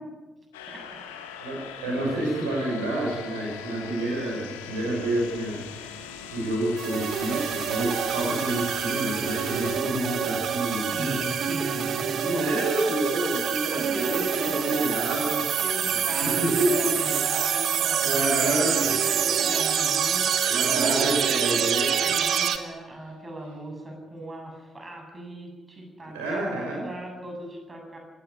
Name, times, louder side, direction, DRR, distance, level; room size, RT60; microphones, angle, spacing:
sound 1, 0.5-9.8, left 8 dB, 75° left, 1.8 m, -41 dB
voice 1, 0.7-1.0 10.9-12.5 13.7-14.6 15.6-20.5 22.0-28.0, right 1 dB, 25° right, 2 dB, 7.9 m, -38 dB
voice 2, 1.4-5.6 6.3-11.2 12.2-15.5 16.1-17.2 18.0-19.2 20.4-22.0 26.1-26.8, right 1 dB, 70° right, -2 dB, 6.5 m, -28 dB
sound 2, 6.8-22.6, right 8 dB, 55° right, 1.6 m, -26 dB
19.5 x 16.5 x 9.8 m, 1.2 s
figure-of-eight pair, 40°, 0 cm